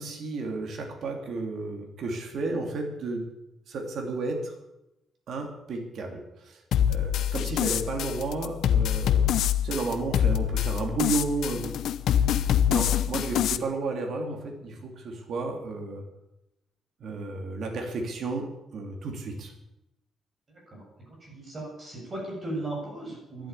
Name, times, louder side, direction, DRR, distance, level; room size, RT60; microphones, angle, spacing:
voice 1, 0.0-3.3 3.7-4.5 5.3-6.6 6.9-9.3 9.6-11.8 12.1-12.2 12.7-16.0 17.0-19.5, right 3 dB, 50° right, 2 dB, 3.0 m, -32 dB
sound 1, 6.7-13.6, left 10 dB, 70° left, 0.8 m, -25 dB
voice 2, 20.7-23.5, right 2 dB, 25° right, -2 dB, 7.4 m, -37 dB
12.0 x 11.5 x 9.8 m, 0.88 s
cardioid pair, 175°, 0 cm